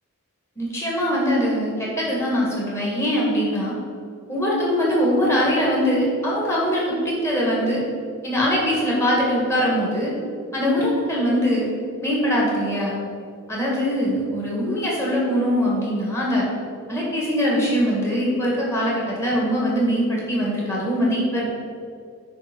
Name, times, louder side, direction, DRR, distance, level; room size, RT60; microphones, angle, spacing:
voice 1, 0.6-3.8 4.3-7.8 8.2-10.1 10.5-11.7 12.0-13.0 13.5-16.5 16.9-21.5, equal, 10° left, -5 dB, 1.9 m, -22 dB
9.6 x 3.6 x 6.1 m, 2.3 s
head